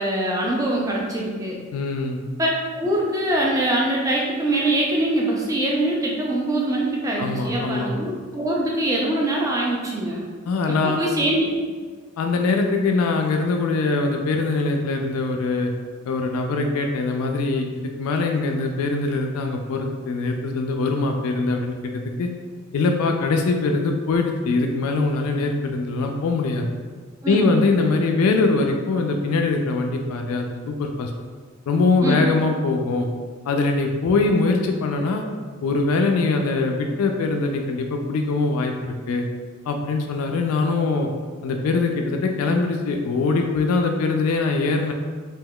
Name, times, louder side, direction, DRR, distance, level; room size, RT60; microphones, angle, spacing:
voice 1, 0.0-1.6 2.4-10.3 10.8-11.4 27.2-27.5 32.0-32.2, right 1 dB, 15° right, -3 dB, 0.3 m, -23 dB
voice 2, 1.7-2.2 7.2-7.9 10.5-11.0 12.2-15.7 16.1-17.7 18.0-22.3 22.7-26.7 27.3-31.1 31.7-33.1 33.5-35.2 35.6-39.2 39.7-41.1 41.4-44.9, left 3 dB, 90° left, 3 dB, 0.3 m, -22 dB
3.6 x 2.8 x 2.2 m, 1.5 s
head